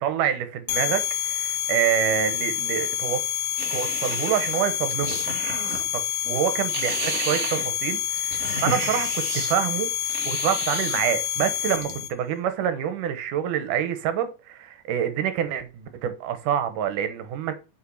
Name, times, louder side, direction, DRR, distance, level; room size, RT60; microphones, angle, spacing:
voice 1, 0.0-3.2 3.7-5.2 5.9-9.9 10.3-17.5, right 9 dB, 80° right, 2.6 m, -27 dB
sound 1, 0.7-12.1, left 11 dB, 75° left, 2.6 m, -28 dB
sound 2, 3.6-5.9 6.3-9.6 10.0-11.0 11.4-12.1, right 4 dB, 55° right, 2.4 m, -33 dB
5.8 x 5.8 x 6.4 m
omnidirectional pair, 3.6 m